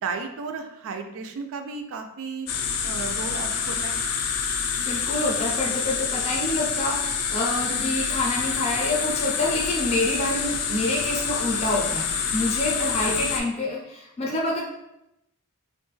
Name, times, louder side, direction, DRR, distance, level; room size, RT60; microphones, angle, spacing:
voice 1, 0.0-4.0 7.7-7.9 12.8-13.2, right 4 dB, 65° right, 6 dB, 0.3 m, -34 dB
sound 1, 2.5-13.4, left 6 dB, 85° left, 0.4 m, -27 dB
voice 2, 4.8-12.1 12.3-14.6, left 1 dB, 30° left, -2 dB, 0.5 m, -27 dB
2.3 x 2.2 x 3.1 m, 0.84 s
head